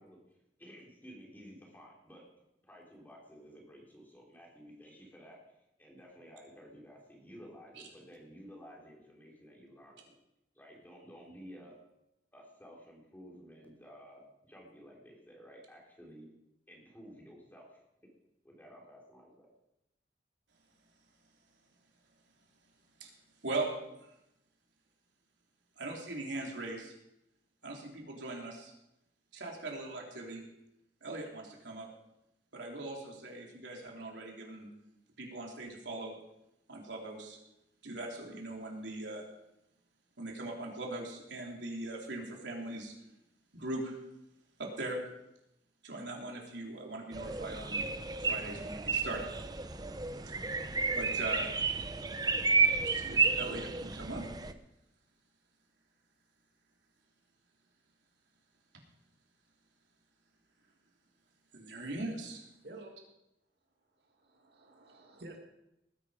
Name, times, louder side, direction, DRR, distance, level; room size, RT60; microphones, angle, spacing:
voice 1, 0.0-2.2 2.6-5.4 5.8-10.2 10.5-11.7 12.3-16.3 16.7-17.8 18.4-19.5, equal, 10° left, -2 dB, 3.4 m, -53 dB
voice 2, 25.8-26.9 27.6-28.7 29.3-30.4 31.0-31.9 32.5-34.7 35.2-36.1 36.7-37.4 37.8-39.2 40.2-42.9 43.5-44.0 44.6-45.0 45.8-47.9 48.2-49.2 50.9-51.5 52.8-54.2 61.5-62.4, right 2 dB, 90° right, -1 dB, 3.6 m, -40 dB
sound 1, 47.1-54.5, right 4 dB, 20° right, 0.7 m, -32 dB
voice 3, 64.0-65.4, right 2 dB, 65° right, 2 dB, 2.4 m, -51 dB
19.5 x 9.7 x 5.1 m, 0.88 s
head